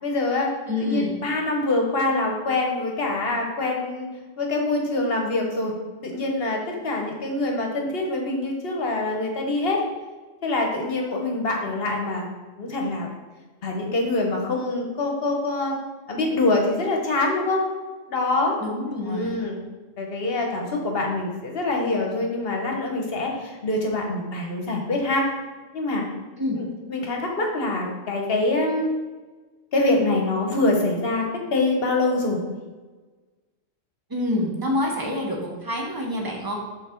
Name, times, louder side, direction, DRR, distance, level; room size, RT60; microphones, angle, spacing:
voice 1, 0.0-0.5 0.8-4.1 4.4-5.7 6.0-9.8 10.4-12.3 12.6-13.1 13.6-15.7 16.1-17.7 18.1-18.6 19.0-19.6 20.0-25.3 25.7-26.1 26.6-28.9 29.7-31.3 31.5-32.4, left 2 dB, 50° left, 1 dB, 1.2 m, -25 dB
voice 2, 0.7-1.1 18.6-19.3 26.4-26.6 34.1-36.5, left 1 dB, 20° right, 0 dB, 0.9 m, -27 dB
5.7 x 3.9 x 4.4 m, 1.3 s
omnidirectional pair, 1.3 m